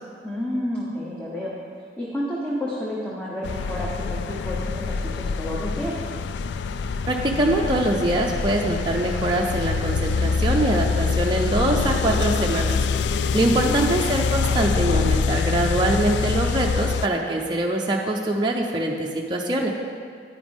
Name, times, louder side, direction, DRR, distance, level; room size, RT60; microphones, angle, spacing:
voice 1, 0.2-6.0 13.5-13.9, left 1 dB, 10° left, -6 dB, 1.0 m, -30 dB
sound 1, 3.4-17.1, left 5 dB, 65° left, 0.3 m, -25 dB
voice 2, 7.1-12.8 13.3-19.7, right 1 dB, 25° right, -1 dB, 0.6 m, -23 dB
10.0 x 9.7 x 3.6 m, 2.1 s
head